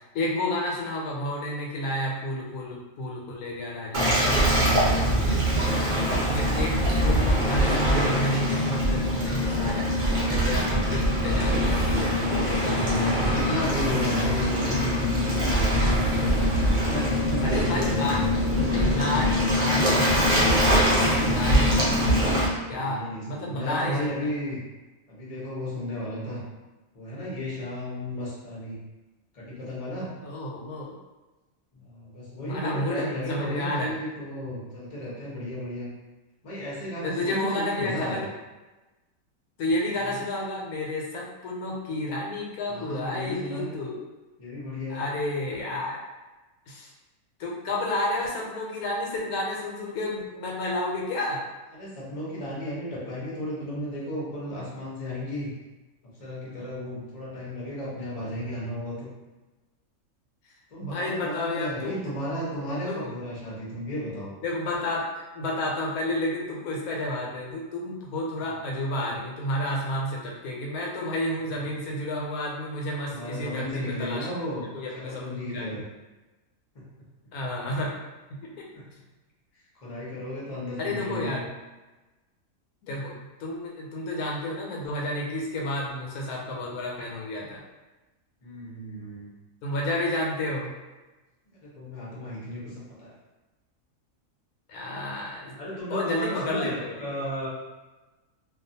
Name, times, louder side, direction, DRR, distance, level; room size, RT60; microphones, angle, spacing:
voice 1, 0.1-4.2 6.3-9.9 10.3-13.6 14.6-14.7 17.4-18.2 18.7-20.4 21.0-21.8 22.7-24.1 30.2-31.0 32.4-33.9 37.0-38.3 39.6-44.0 44.9-46.0 46.7-46.9 47.4-51.4 60.8-62.1 62.9-63.1 64.4-65.1 65.3-74.3 74.7-75.8 77.3-78.0 78.4-78.7 80.8-81.5 82.8-83.1 83.4-87.6 89.6-90.7 94.7-97.2, left 1 dB, 85° left, -2 dB, 1.1 m, -31 dB
Waves surf, 3.9-22.5, equal, 55° right, 0.6 m, -23 dB
voice 2, 4.1-5.7 12.6-18.2 22.5-24.6 25.1-26.4 26.9-28.8 29.3-30.1 31.7-35.9 36.4-38.2 40.1-40.2 42.7-43.7 44.4-45.0 51.7-55.5 56.2-59.1 60.7-64.3 68.4-68.5 71.6-71.7 73.1-74.6 74.9-75.8 76.7-76.9 78.7-78.8 79.8-81.4 88.4-89.3 91.5-93.1 95.6-97.5, left 1 dB, 35° left, -6 dB, 0.7 m, -34 dB
2.4 x 2.3 x 2.6 m, 1.1 s
omnidirectional pair, 1.5 m